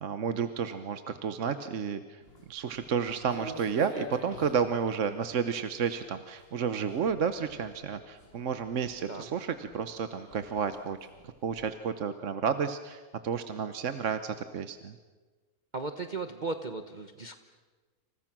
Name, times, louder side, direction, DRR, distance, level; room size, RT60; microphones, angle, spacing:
voice 1, 0.0-2.2 2.5-11.0 11.2-14.9, right 6 dB, 60° right, 9 dB, 1.3 m, -31 dB
Walk footsteps, 2.2-11.7, right 1 dB, 40° left, 6.3 m, -50 dB
voice 2, 15.7-17.4, right 3 dB, 35° right, 7 dB, 1.1 m, -36 dB
29.0 x 28.5 x 6.1 m, 1.3 s
omnidirectional pair, 1.5 m